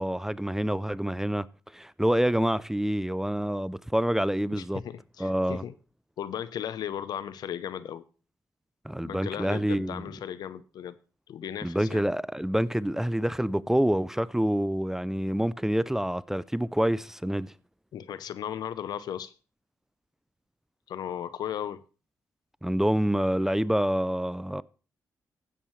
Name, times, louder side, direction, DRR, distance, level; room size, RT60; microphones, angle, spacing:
voice 1, 0.0-1.5 1.7-4.8 5.2-5.6 8.8-10.0 11.6-17.5 22.6-24.6, equal, 5° right, 0.4 m, -27 dB
voice 2, 4.5-5.7 6.2-8.1 9.0-11.0 11.3-12.0 17.9-19.3 20.9-21.8, left 9 dB, 80° left, 0.7 m, -36 dB
16.0 x 7.3 x 3.2 m
cardioid pair, 65°, 7 cm